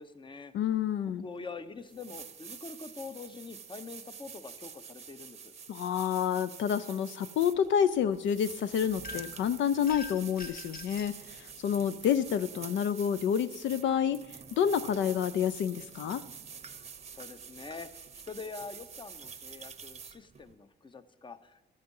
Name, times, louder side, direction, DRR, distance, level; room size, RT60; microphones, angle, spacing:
voice 1, 0.0-0.5 1.2-5.5 16.8-21.6, left 4 dB, 25° left, 13 dB, 0.7 m, -45 dB
voice 2, 0.5-1.3 5.7-16.2, left 8 dB, 70° left, 14 dB, 0.4 m, -29 dB
sound 1, 1.4-1.5 1.9-20.5, right 6 dB, 35° right, 0.7 m, -47 dB
sound 2, 9.0-9.4 9.9-11.1, left 3 dB, 45° left, 1.5 m, -44 dB
12.5 x 7.6 x 5.4 m, 1.1 s
cardioid pair, 90°, 20 cm